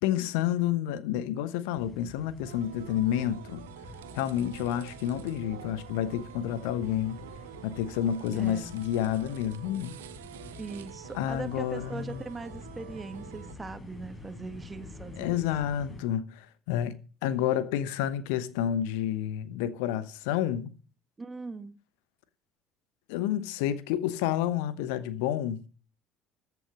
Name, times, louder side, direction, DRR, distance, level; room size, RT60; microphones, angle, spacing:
voice 1, 0.0-3.6 4.1-7.2 7.6-10.0 11.1-12.2 15.2-17.0 17.2-20.7 23.1-25.6, left 11 dB, 60° left, 1.0 m, -29 dB
sound 1, 1.7-16.0, left 2 dB, 25° left, 4.6 m, -48 dB
sound 2, 2.4-13.5, right 13 dB, 70° right, 0.8 m, -48 dB
voice 2, 8.3-8.7 10.6-15.5 21.2-21.7, right 3 dB, 20° right, 1.5 m, -40 dB
14.0 x 8.3 x 6.1 m
figure-of-eight pair, 60°, 0 cm